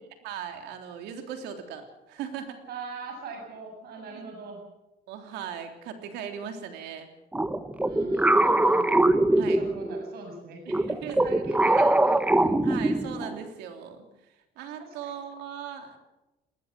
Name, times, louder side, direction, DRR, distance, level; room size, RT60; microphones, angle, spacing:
voice 1, 0.2-2.6 4.0-4.3 5.1-7.1 9.3-9.6 10.6-11.9 12.6-14.1 14.5-16.0, right 8 dB, 90° right, 5 dB, 3.3 m, -39 dB
voice 2, 2.7-4.6 7.8-8.9 9.3-12.6 15.0-15.1, right 4 dB, 70° right, 2 dB, 7.1 m, -41 dB
sound 1, 7.3-10.1 10.7-13.4, right 1 dB, 10° right, 1.1 m, -22 dB
20.0 x 20.0 x 7.6 m, 0.99 s
cardioid pair, 110°, 17 cm